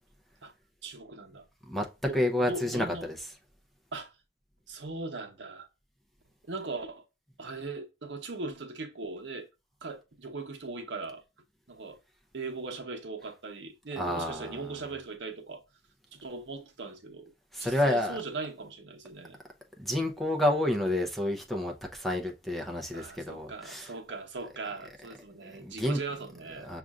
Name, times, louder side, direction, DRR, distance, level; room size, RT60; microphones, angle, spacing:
voice 1, 0.8-1.5 2.1-3.1 3.9-4.1 4.7-5.7 6.5-7.0 7.4-9.5 9.8-11.2 11.7-12.0 12.3-15.6 16.1-17.3 17.6-19.4 22.9-26.7, right 3 dB, 75° right, 0.9 m, -39 dB
voice 2, 2.1-3.2 14.0-14.6 17.5-18.2 19.8-23.9 25.4-26.0 26.6-26.8, left 1 dB, ahead, 0.6 m, -29 dB
6.3 x 2.5 x 2.3 m
head